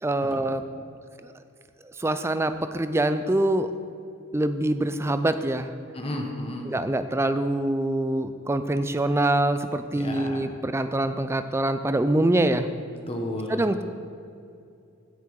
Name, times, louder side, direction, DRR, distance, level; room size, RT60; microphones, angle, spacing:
voice 1, 0.0-0.6 2.0-3.7 4.3-5.7 6.7-12.7 13.5-13.8, right 1 dB, 10° right, 10 dB, 0.4 m, -24 dB
voice 2, 5.9-6.7 9.9-10.4 13.1-13.8, left 1 dB, 25° left, 2 dB, 1.1 m, -33 dB
15.5 x 6.0 x 4.7 m, 2.5 s
head